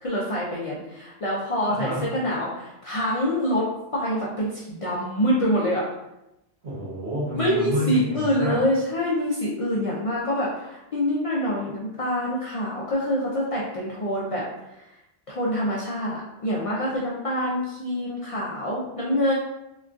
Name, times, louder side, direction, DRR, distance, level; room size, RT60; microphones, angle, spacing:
voice 1, 0.0-5.8 7.4-14.4 14.7-14.9 15.3-19.3, equal, 60° left, -5 dB, 0.3 m, -26 dB
voice 2, 1.7-2.1 6.6-8.6, equal, 70° right, -7 dB, 1.3 m, -29 dB
2.9 x 2.3 x 2.4 m, 0.91 s
omnidirectional pair, 1.2 m